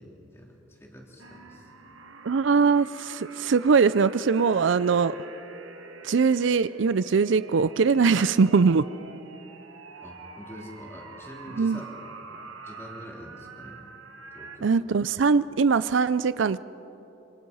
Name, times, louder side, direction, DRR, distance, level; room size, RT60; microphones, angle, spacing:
voice 1, 0.0-1.7 10.0-13.8 14.3-14.8, equal, 15° left, -2 dB, 3.6 m, -45 dB
sound 1, 1.2-14.6, right 3 dB, 85° right, 1.9 m, -45 dB
voice 2, 2.2-5.1 6.0-8.9 11.6-11.8 14.6-16.6, right 5 dB, 70° right, 16 dB, 0.5 m, -21 dB
26.5 x 26.0 x 5.5 m, 3.0 s
head